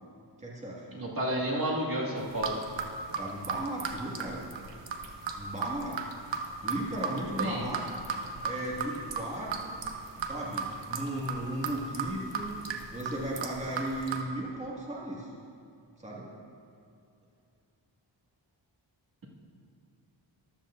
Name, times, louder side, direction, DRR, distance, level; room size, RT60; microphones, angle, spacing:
voice 1, 0.4-0.9 3.2-4.4 5.3-6.1 6.6-7.8 8.4-9.8 10.2-12.6 12.9-15.3 16.0-16.3, right 1 dB, 15° right, -4 dB, 1.8 m, -36 dB
voice 2, 0.9-2.5 7.4-7.6, right 1 dB, 50° right, -4 dB, 2.1 m, -31 dB
sound 1, 2.2-14.2, right 5 dB, 70° right, 1.0 m, -36 dB
14.0 x 12.0 x 2.5 m, 2.5 s
wide cardioid pair, 90°, 46 cm